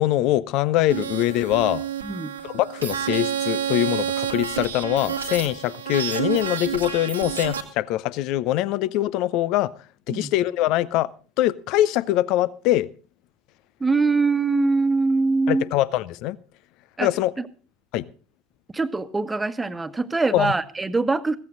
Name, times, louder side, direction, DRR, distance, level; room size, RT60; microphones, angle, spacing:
voice 1, 0.0-1.9 2.4-9.7 10.1-11.1 11.4-12.9 15.5-16.4 17.0-17.3 17.9-18.1 20.3-20.5, left 14 dB, 60° left, 0.7 m, -23 dB
sound 1, 0.9-7.6, right 9 dB, 85° right, 1.6 m, -29 dB
voice 2, 2.0-2.3 10.1-10.3 13.8-15.6 17.0-17.1 17.4-17.5 18.7-21.4, right 3 dB, 15° right, 1.3 m, -23 dB
16.0 x 14.5 x 3.9 m
hypercardioid pair, 70°, 0 cm